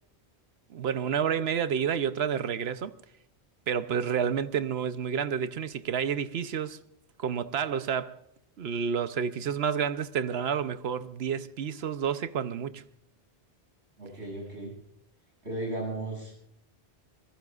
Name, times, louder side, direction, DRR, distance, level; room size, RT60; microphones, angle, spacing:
voice 1, 0.7-2.9 3.7-6.8 7.2-8.2 8.6-12.8, right 7 dB, 70° right, 1.0 m, -29 dB
voice 2, 14.0-14.8 15.4-16.4, right 2 dB, 90° right, 8.3 m, -35 dB
25.5 x 21.0 x 2.4 m
omnidirectional pair, 1.1 m